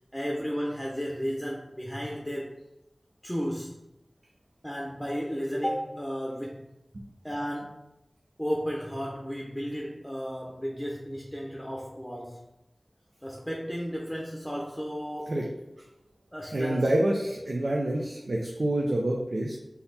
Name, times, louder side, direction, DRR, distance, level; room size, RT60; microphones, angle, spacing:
voice 1, 0.1-2.6 3.2-3.8 4.6-6.8 7.2-7.8 8.4-12.4 13.2-15.4 16.3-16.9, equal, 5° left, -3 dB, 0.7 m, -33 dB
voice 2, 16.5-19.6, right 1 dB, 75° right, -1 dB, 0.5 m, -27 dB
4.0 x 2.8 x 4.0 m, 0.89 s
wide cardioid pair, 45°, 0 cm